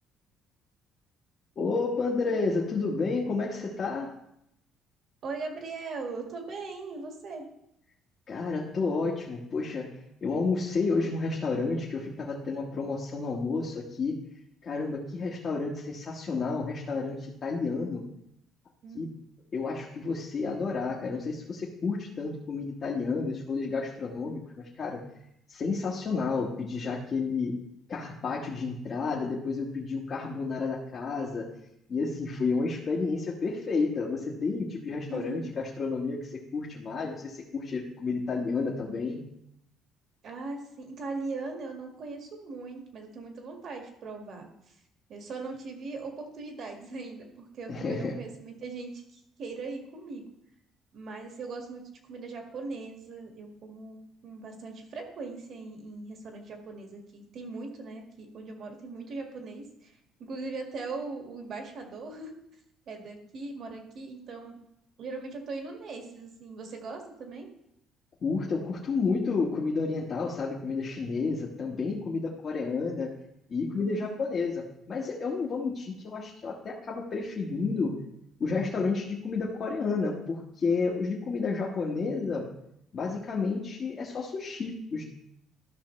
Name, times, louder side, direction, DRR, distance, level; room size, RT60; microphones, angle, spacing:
voice 1, 1.6-4.1 8.3-14.2 14.6-18.0 18.9-19.1 19.5-25.0 25.5-27.5 27.9-31.5 31.9-39.2 47.7-48.2 68.2-73.1 73.5-78.0 78.4-82.5 82.9-85.0, left 4 dB, 40° left, -3 dB, 1.3 m, -31 dB
voice 2, 5.2-7.5 18.8-19.0 35.1-35.5 40.2-44.5 45.1-50.2 50.9-51.8 52.1-59.9 60.2-62.4 62.9-64.6 65.0-67.5 73.7-74.3, right 3 dB, 50° right, 3 dB, 1.8 m, -39 dB
13.0 x 5.8 x 3.2 m, 0.78 s
cardioid pair, 120°, 0 cm